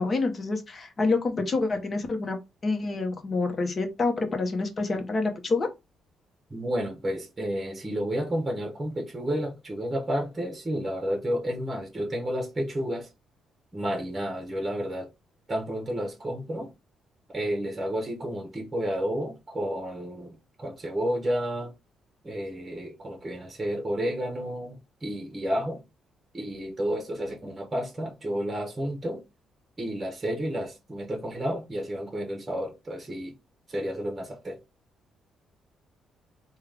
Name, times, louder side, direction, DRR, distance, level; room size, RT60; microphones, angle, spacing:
voice 1, 0.0-2.4 2.6-5.7, left 3 dB, 40° left, 1.0 m, -27 dB
voice 2, 6.5-13.1 13.7-15.1 15.5-16.7 17.3-21.7 22.2-25.8 26.3-29.2 29.8-33.3 33.7-34.6, equal, 20° right, 1.0 m, -31 dB
3.5 x 2.4 x 3.3 m
cardioid pair, 90°, 0 cm